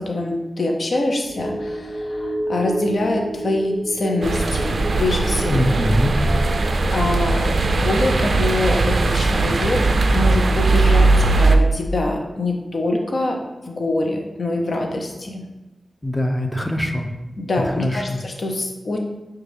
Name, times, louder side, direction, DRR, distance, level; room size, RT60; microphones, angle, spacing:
voice 1, 0.0-5.8 6.4-13.4 13.7-15.4 17.4-19.0, left 2 dB, 65° left, 2 dB, 0.6 m, -24 dB
sound 1, 1.2-11.9 12.2-12.3, right 1 dB, 5° right, 0.9 m, -32 dB
sound 2, 4.2-11.6, right 3 dB, 70° right, 0.3 m, -19 dB
voice 2, 5.5-6.1 16.0-17.1 17.8-18.2, left 1 dB, 10° left, 4 dB, 0.5 m, -22 dB
6.1 x 2.3 x 3.3 m, 1.1 s
cardioid pair, 45°, 0 cm